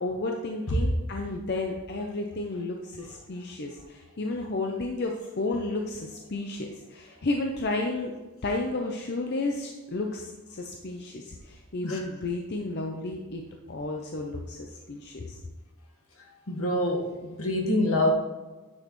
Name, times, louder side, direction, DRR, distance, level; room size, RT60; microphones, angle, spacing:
voice 1, 0.0-8.1 8.4-13.4 13.7-15.4, left 2 dB, 50° left, 2 dB, 0.6 m, -32 dB
voice 2, 16.5-18.1, left 1 dB, 75° left, 0 dB, 1.5 m, -26 dB
9.8 x 6.3 x 3.1 m, 1.2 s
head